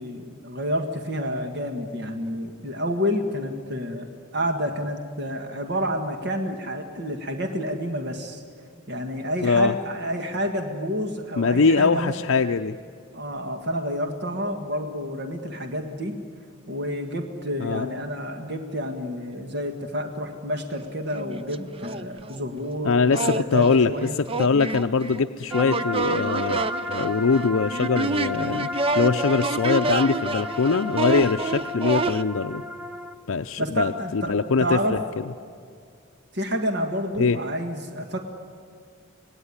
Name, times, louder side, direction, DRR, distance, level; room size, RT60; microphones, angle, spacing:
voice 1, 0.0-8.4 8.9-12.1 13.1-16.2 16.7-24.2 33.6-34.3 34.6-35.0 36.3-38.2, equal, 55° right, 5 dB, 1.7 m, -29 dB
voice 2, 9.4-9.7 11.4-12.8 17.6-17.9 22.8-32.6 33.3-35.0 37.2-37.4, left 4 dB, 70° left, 7 dB, 0.6 m, -22 dB
sound 1, 20.7-20.8 21.1-22.4 23.1-32.2, right 3 dB, 25° right, 0.5 m, -28 dB
sound 2, 25.5-33.1, left 2 dB, ahead, 1.0 m, -33 dB
25.5 x 18.5 x 9.8 m, 2.2 s
head